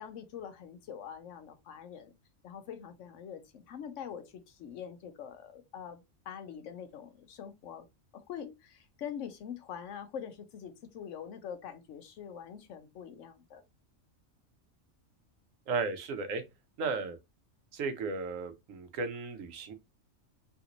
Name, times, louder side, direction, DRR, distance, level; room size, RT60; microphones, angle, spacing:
voice 1, 0.0-2.2 2.4-6.0 6.3-7.9 8.1-13.6, left 8 dB, 70° left, 1.0 m, -44 dB
voice 2, 15.7-16.4 16.8-17.2 17.7-19.7, right 4 dB, 90° right, 1.1 m, -34 dB
3.3 x 2.9 x 2.5 m
omnidirectional pair, 1.3 m